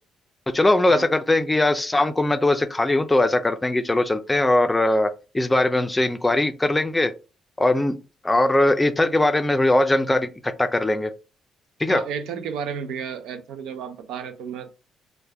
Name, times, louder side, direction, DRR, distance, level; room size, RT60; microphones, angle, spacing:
voice 1, 0.5-7.1 7.6-8.0 8.2-11.1 11.8-12.0, left 2 dB, 15° left, 0.4 m, -20 dB
voice 2, 11.9-14.7, right 7 dB, 85° right, 0.4 m, -32 dB
3.3 x 2.2 x 3.3 m
cardioid pair, 90°, 0 cm